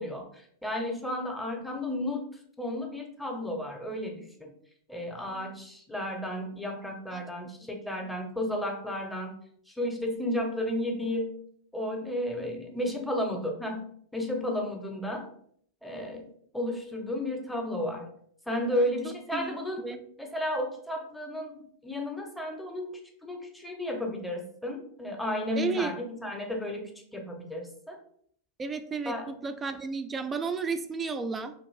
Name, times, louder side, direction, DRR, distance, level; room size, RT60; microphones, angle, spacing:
voice 1, 0.0-2.3 2.6-4.5 4.9-9.4 9.7-11.4 11.7-15.3 15.8-16.2 16.5-18.1 18.5-19.8 20.2-22.9 23.2-28.0 29.0-29.3, left 1 dB, 5° left, 2 dB, 0.7 m, -33 dB
voice 2, 5.2-5.5 7.1-7.2 8.0-8.1 19.0-20.0 25.6-25.9 28.6-31.5, right 5 dB, 20° right, 8 dB, 0.3 m, -33 dB
2.5 x 2.4 x 3.1 m, 0.63 s
figure-of-eight pair, 95°, 0 cm